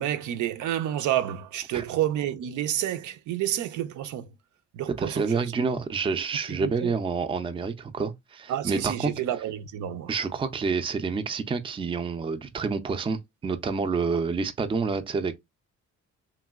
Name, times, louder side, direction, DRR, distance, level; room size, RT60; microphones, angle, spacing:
voice 1, 0.0-4.3 4.7-5.5 6.5-6.9 8.5-10.1, right 11 dB, 80° right, 0.5 m, -29 dB
voice 2, 5.0-9.1 10.1-15.4, right 5 dB, 20° right, 0.4 m, -28 dB
3.0 x 2.6 x 2.3 m
cardioid pair, 90°, 30 cm